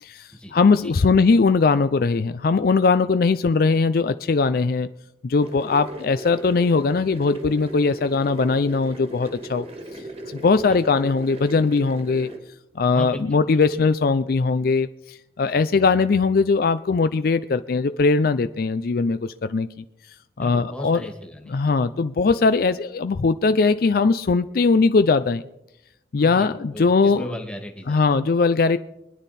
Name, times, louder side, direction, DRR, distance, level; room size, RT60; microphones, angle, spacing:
voice 1, 0.0-4.9 5.2-9.7 10.3-12.3 12.8-19.7 20.4-21.0 21.5-25.4 26.1-27.3 27.9-28.8, left 4 dB, 55° left, 12 dB, 0.4 m, -20 dB
voice 2, 0.8-1.1 10.7-10.8 12.9-13.4 13.7-13.8 15.5-15.7 20.4-21.8 26.2-28.2, equal, 5° left, 4 dB, 1.7 m, -37 dB
sound 1, 5.4-12.4, right 1 dB, 35° right, 1.7 m, -38 dB
24.0 x 10.0 x 4.2 m, 0.87 s
head